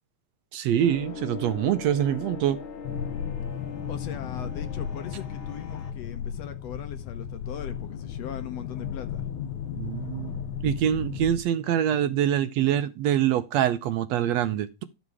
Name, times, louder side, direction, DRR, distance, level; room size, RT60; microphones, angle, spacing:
voice 1, 0.5-2.6 9.8-14.8, right 10 dB, 75° right, 1.7 m, -25 dB
sound 1, 0.8-5.9, left 4 dB, 50° left, 2.0 m, -40 dB
sound 2, 2.8-11.4, left 8 dB, 85° left, 2.3 m, -35 dB
voice 2, 3.9-9.2, left 10 dB, 70° left, 1.9 m, -40 dB
12.0 x 6.2 x 4.7 m
omnidirectional pair, 3.4 m